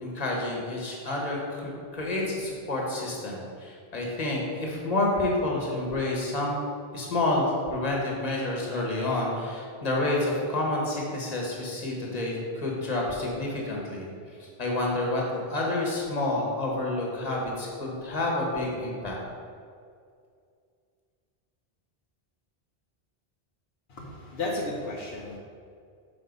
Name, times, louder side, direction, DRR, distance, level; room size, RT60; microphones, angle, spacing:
voice 1, 0.0-6.6 6.9-14.1 14.4-19.2, left 2 dB, 40° left, -2 dB, 1.4 m, -29 dB
voice 2, 23.9-25.4, left 2 dB, 75° left, -3 dB, 1.1 m, -33 dB
5.9 x 4.3 x 5.2 m, 2.3 s
omnidirectional pair, 1.1 m